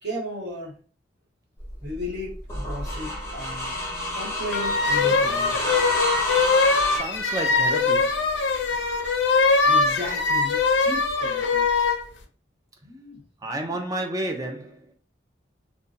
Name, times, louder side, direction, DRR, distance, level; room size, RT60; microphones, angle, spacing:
voice 1, 0.0-0.7 1.8-3.8 4.1-5.7 6.3-6.5 9.2-11.7 12.8-13.8, left 1 dB, 60° right, 1.3 m, -35 dB
sound 1, 1.6-7.0, left 1 dB, 15° left, 0.7 m, -29 dB
sound 2, 4.5-12.0, left 4 dB, 75° left, 0.4 m, -22 dB
voice 2, 6.9-8.2 13.4-14.9, right 1 dB, 20° right, 0.3 m, -31 dB
2.8 x 2.1 x 2.4 m
head